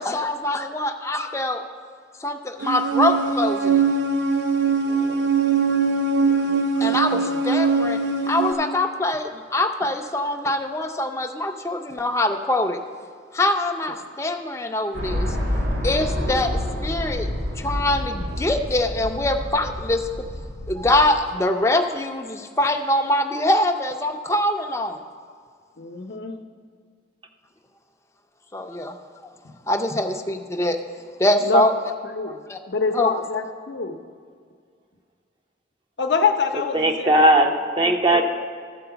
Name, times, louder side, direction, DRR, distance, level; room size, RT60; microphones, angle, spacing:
voice 1, 0.0-1.6 2.2-3.9 6.3-6.4 6.8-8.0 8.3-12.8 13.3-15.4 15.8-20.1 20.7-25.0 28.5-29.0 29.7-30.8 31.2-31.7 32.3-32.6 32.9-33.1, left 1 dB, 15° left, 5 dB, 0.5 m, -23 dB
sound 1, 2.6-8.5, right 4 dB, 75° right, 0.8 m, -21 dB
voice 2, 4.9-5.2 36.7-38.2, right 1 dB, 25° right, 4 dB, 0.6 m, -19 dB
voice 3, 6.4-7.4 25.8-26.4 29.4-29.6 31.4-31.7 32.0-32.4 32.7-34.0 36.0-37.4 37.8-38.2, left 4 dB, 70° left, 5 dB, 0.7 m, -26 dB
sound 2, 14.9-21.2, left 1 dB, 90° right, 2.0 m, -28 dB
13.0 x 4.7 x 6.9 m, 2.1 s
head